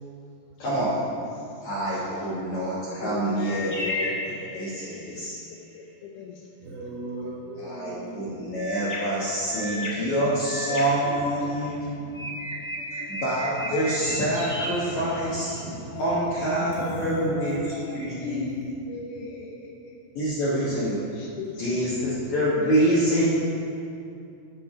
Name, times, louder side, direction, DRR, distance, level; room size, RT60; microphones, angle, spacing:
voice 1, 0.6-1.0 1.6-4.1 4.5-5.4 7.6-11.8 12.9-15.5 15.8-18.4 20.1-21.0 21.6-23.3, right 1 dB, 60° left, -9 dB, 2.5 m, -26 dB
voice 2, 3.0-4.3 4.9-5.0 5.5-6.5 7.2-7.3 9.6-11.3 13.0-13.1 16.0-16.7 17.3-20.0 21.1-21.8 22.6-23.3, left 5 dB, 90° left, 0 dB, 1.8 m, -38 dB
sound 1, 3.4-5.1 8.6-11.7 12.1-15.6, left 1 dB, 15° left, 0.6 m, -34 dB
voice 3, 6.6-8.6 14.9-15.0 15.5-15.8 16.5-18.1 18.5-18.6 23.1-23.3, right 1 dB, 90° right, -5 dB, 4.2 m, -36 dB
13.5 x 5.0 x 5.0 m, 2.6 s
omnidirectional pair, 4.5 m